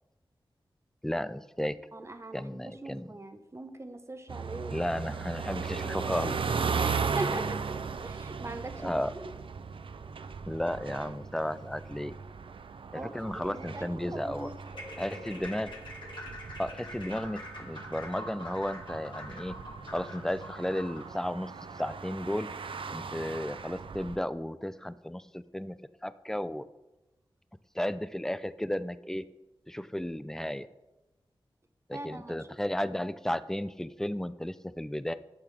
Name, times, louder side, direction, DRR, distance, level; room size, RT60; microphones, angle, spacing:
voice 1, 1.0-1.8 2.3-3.1 4.7-6.4 8.8-9.1 10.5-12.2 12.9-14.5 15.0-15.7 16.6-19.6 19.9-22.5 22.9-25.8 26.0-26.7 27.7-29.3 29.7-30.7 31.9-35.1, left 1 dB, 5° left, 14 dB, 0.4 m, -34 dB
voice 2, 1.9-4.9 6.8-7.8 8.0-9.3 12.9-14.5 31.9-32.5, right 2 dB, 30° right, 8 dB, 0.8 m, -41 dB
sound 1, 4.3-24.2, right 5 dB, 65° right, 0.4 m, -37 dB
sound 2, 14.7-21.1, left 1 dB, 55° left, 1.8 m, -45 dB
10.5 x 5.9 x 3.3 m, 1.0 s
wide cardioid pair, 60°, 9 cm